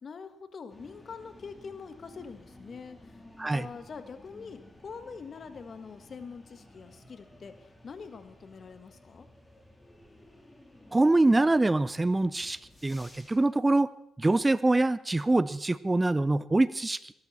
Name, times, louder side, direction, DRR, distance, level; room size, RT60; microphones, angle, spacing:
voice 1, 0.0-3.2 3.5-9.3, left 5 dB, 50° left, 11 dB, 1.5 m, -44 dB
sound 1, 0.7-13.4, left 1 dB, 15° left, 3.4 m, -54 dB
voice 2, 10.9-13.9 14.2-17.1, right 2 dB, 20° right, 18 dB, 0.6 m, -24 dB
21.5 x 13.0 x 4.2 m, 0.78 s
supercardioid pair, 55°, 0 cm